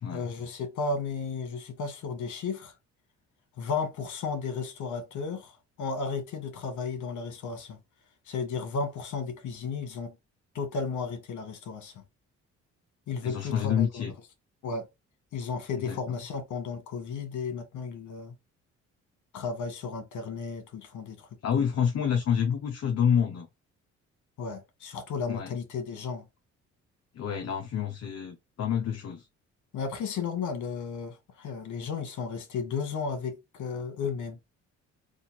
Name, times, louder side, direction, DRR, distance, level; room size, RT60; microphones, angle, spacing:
voice 1, 0.1-2.7 3.6-5.5 5.8-7.8 8.3-10.1 10.5-11.9 13.1-14.1 14.6-14.9 15.3-18.3 19.3-21.3 21.6-21.7 24.4-26.2 29.7-34.4, left 5 dB, 75° left, 1.5 m, -34 dB
voice 2, 13.2-14.1 15.8-16.2 21.4-23.5 25.3-25.5 27.1-29.2, left 8 dB, 55° left, 0.9 m, -28 dB
4.0 x 2.5 x 4.1 m
cardioid pair, 90°, 30 cm